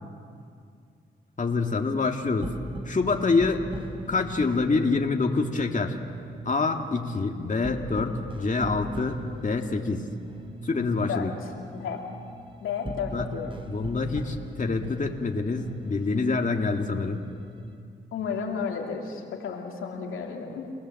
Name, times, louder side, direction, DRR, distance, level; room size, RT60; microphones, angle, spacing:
voice 1, 1.4-2.5 2.9-3.6 4.1-6.0 6.4-10.1 10.6-11.3 13.1-13.3 13.7-17.2, left 4 dB, 40° left, 3 dB, 2.1 m, -26 dB
sound 1, 2.0-17.8, right 1 dB, 25° right, 3.7 m, -40 dB
voice 2, 11.7-12.0 12.6-13.6 18.1-20.7, left 6 dB, 90° left, 1 dB, 2.6 m, -32 dB
29.5 x 18.0 x 7.7 m, 2.3 s
cardioid pair, 60°, 21 cm